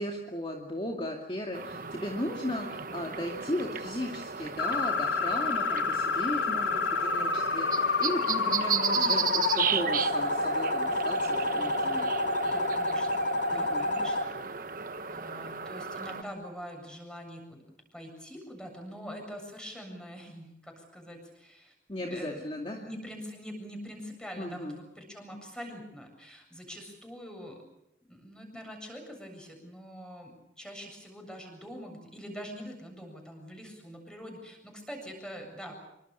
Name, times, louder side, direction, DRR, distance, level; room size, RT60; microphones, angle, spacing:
voice 1, 0.0-12.1 13.5-13.8 21.9-22.8 24.4-24.7, left 1 dB, 30° left, 1 dB, 2.4 m, -36 dB
sound 1, 1.5-16.2, right 6 dB, 50° right, 1.2 m, -35 dB
sound 2, 4.6-14.2, left 3 dB, 75° left, 1.6 m, -29 dB
voice 2, 12.4-13.2 13.5-14.6 15.1-17.6 17.9-22.5 22.8-27.6 28.1-30.3 30.6-35.7, equal, 5° left, 3 dB, 7.6 m, -44 dB
27.0 x 24.5 x 6.9 m, 0.83 s
head